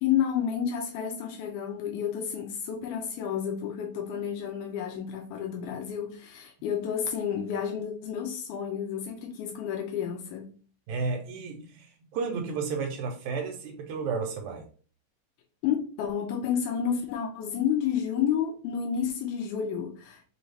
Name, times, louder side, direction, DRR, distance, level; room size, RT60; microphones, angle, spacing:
voice 1, 0.0-10.5 15.6-20.3, left 8 dB, 85° left, 2.2 m, -30 dB
voice 2, 10.9-14.7, right 5 dB, 80° right, 2.0 m, -32 dB
5.4 x 2.4 x 3.3 m
omnidirectional pair, 3.5 m